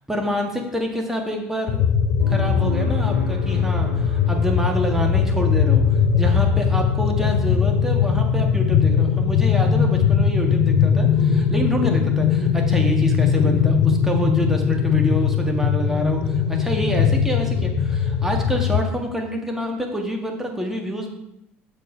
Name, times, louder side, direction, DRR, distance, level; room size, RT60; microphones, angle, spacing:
voice 1, 0.1-1.8 2.3-21.1, equal, 5° right, 1 dB, 1.7 m, -27 dB
sound 1, 1.7-18.8, left 7 dB, 45° left, 0.7 m, -20 dB
sound 2, 2.2-16.0 18.3-18.4, left 5 dB, 90° left, 1.3 m, -41 dB
6.7 x 6.1 x 5.0 m, 0.84 s
figure-of-eight pair, 60°, 7 cm